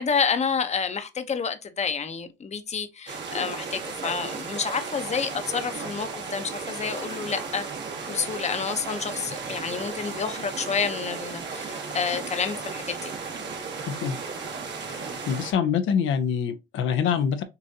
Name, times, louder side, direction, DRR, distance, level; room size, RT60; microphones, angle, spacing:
voice 1, 0.0-7.6 8.1-13.1, left 6 dB, 35° left, 0.8 m, -29 dB
sound 1, 3.1-15.5, right 4 dB, 60° right, 1.5 m, -35 dB
voice 2, 15.0-17.4, left 7 dB, 80° left, 0.7 m, -25 dB
6.7 x 2.6 x 2.8 m
cardioid pair, 90°, 20 cm